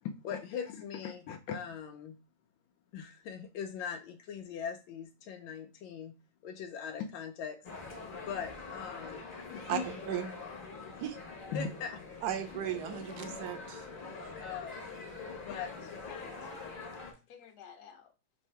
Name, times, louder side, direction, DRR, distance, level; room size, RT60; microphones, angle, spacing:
voice 1, 0.0-2.2 2.9-6.1 6.4-7.6 8.3-9.2 9.5-9.8 11.5-12.3 14.4-15.0 15.4-15.7, left 7 dB, 90° left, 1.3 m, -40 dB
sound 1, 7.6-17.1, left 4 dB, 40° left, 0.8 m, -44 dB
voice 2, 9.7-10.3 11.0-11.2 12.2-13.9, right 10 dB, 70° right, 1.0 m, -36 dB
voice 3, 15.5-16.8 17.3-18.1, left 7 dB, 65° left, 1.1 m, -52 dB
3.5 x 2.7 x 4.4 m
omnidirectional pair, 2.1 m